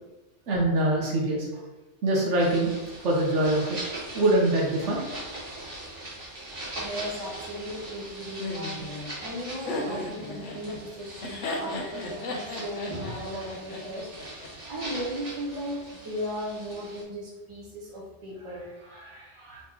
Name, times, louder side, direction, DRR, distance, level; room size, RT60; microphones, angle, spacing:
voice 1, 0.5-1.5 2.0-2.7 3.0-3.8 4.1-5.1, right 1 dB, 75° right, -2 dB, 1.2 m, -23 dB
sound 1, 2.4-17.0, right 1 dB, 45° right, 1.7 m, -41 dB
voice 2, 6.7-14.1 14.3-19.6, equal, 25° right, -5 dB, 1.1 m, -37 dB
Laughter, 8.4-14.5, left 2 dB, 85° left, 1.1 m, -35 dB
4.0 x 3.0 x 3.6 m, 1.1 s
omnidirectional pair, 1.2 m